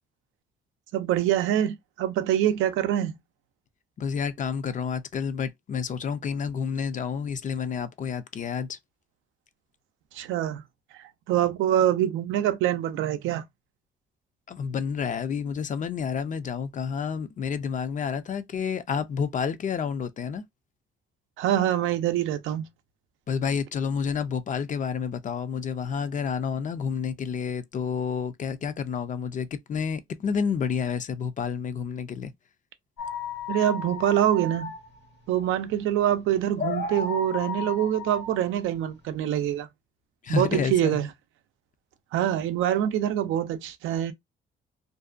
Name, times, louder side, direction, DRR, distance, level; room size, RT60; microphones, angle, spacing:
voice 1, 0.9-3.1 10.1-10.6 10.9-13.4 21.4-22.7 33.5-34.7 35.3-39.7 40.3-41.1 42.1-44.1, right 11 dB, 90° right, 0.5 m, -25 dB
voice 2, 4.0-8.8 14.5-20.5 23.3-32.3 40.2-41.0, left 6 dB, 40° left, 0.4 m, -29 dB
sound 1, 33.0-39.6, left 5 dB, 60° left, 0.9 m, -35 dB
2.6 x 2.1 x 2.4 m
cardioid pair, 90°, 20 cm